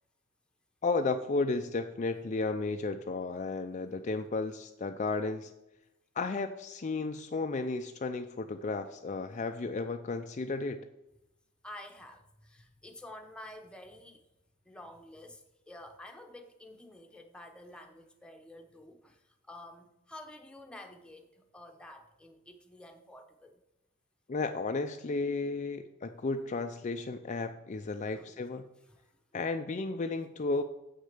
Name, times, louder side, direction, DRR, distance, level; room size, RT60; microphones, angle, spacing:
voice 1, 0.8-5.5 6.2-10.8 24.3-28.6 29.3-30.6, left 3 dB, 35° left, 6 dB, 0.4 m, -33 dB
voice 2, 11.6-14.2 14.6-23.6 28.1-28.3 28.9-29.0, left 1 dB, 5° left, 3 dB, 0.9 m, -50 dB
8.0 x 6.4 x 6.6 m, 0.90 s
head